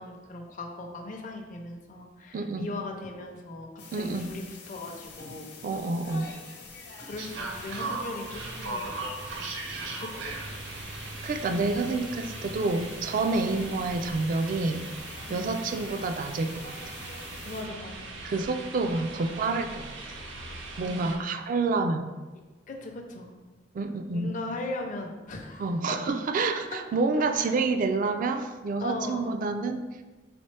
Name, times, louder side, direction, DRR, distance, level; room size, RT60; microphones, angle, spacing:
voice 1, 0.0-5.5 7.0-9.0 10.0-10.2 13.5-13.7 15.3-15.6 17.4-18.1 20.8-21.3 22.7-23.3 24.1-26.0 27.1-27.5 28.8-29.4, left 2 dB, 45° left, 2 dB, 0.5 m, -39 dB
voice 2, 2.3-2.7 3.9-4.3 5.6-6.3 11.2-14.9 15.3-16.7 18.2-19.9 20.8-22.1 23.7-24.3 25.6-29.8, right 3 dB, 45° right, 8 dB, 0.3 m, -28 dB
sound 1, 3.8-17.6, left 4 dB, 65° left, 0.9 m, -46 dB
sound 2, 7.2-21.2, right 3 dB, 85° right, 0.6 m, -39 dB
4.2 x 3.4 x 3.2 m, 1.2 s
head